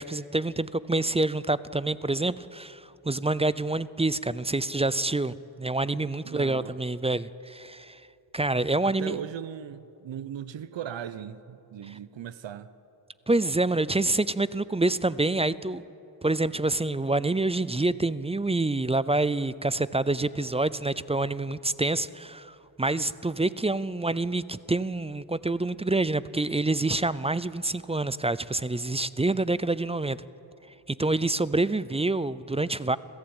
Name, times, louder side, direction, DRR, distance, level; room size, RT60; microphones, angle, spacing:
voice 1, 0.0-8.0 8.3-9.2 13.3-15.8 16.2-30.2 30.9-33.0, right 2 dB, 15° right, 17 dB, 0.5 m, -27 dB
voice 2, 6.2-6.7 8.8-12.7, right 9 dB, 70° right, 14 dB, 0.9 m, -38 dB
26.5 x 16.0 x 8.9 m, 2.7 s
wide cardioid pair, 95°, 46 cm